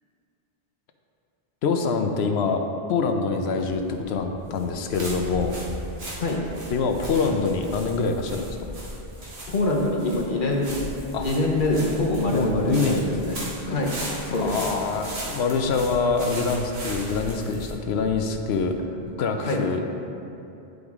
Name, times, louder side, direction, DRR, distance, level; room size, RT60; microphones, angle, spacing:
voice 1, 1.6-5.6 6.7-8.6 11.1-11.3 12.3-13.0 14.4-18.8 19.2-19.8, left 4 dB, 90° left, 5 dB, 0.9 m, -25 dB
sound 1, 3.6-19.1, right 1 dB, 80° right, 1.6 m, -37 dB
voice 2, 9.5-10.8 11.2-13.4 13.6-13.9 14.2-14.6 19.4-19.6, left 2 dB, 55° left, -1 dB, 1.0 m, -24 dB
9.5 x 5.0 x 3.5 m, 2.8 s
omnidirectional pair, 1.0 m